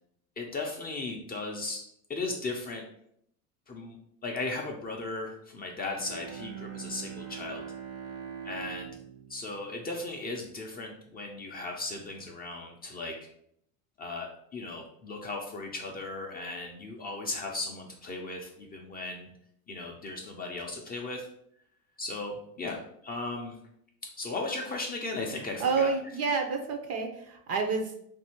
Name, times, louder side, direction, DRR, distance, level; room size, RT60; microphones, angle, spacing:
voice 1, 0.4-2.8 3.7-4.0 4.2-7.6 8.4-8.9 9.3-13.3 14.0-19.3 19.7-21.3 22.0-23.6 24.0-25.9, left 2 dB, 20° left, 0 dB, 0.5 m, -36 dB
Bowed string instrument, 5.9-10.8, right 8 dB, 70° right, 0.9 m, -43 dB
voice 2, 25.6-27.9, right 5 dB, 35° right, 3 dB, 0.6 m, -29 dB
2.7 x 2.6 x 4.3 m, 0.70 s
hypercardioid pair, 90°, 47 cm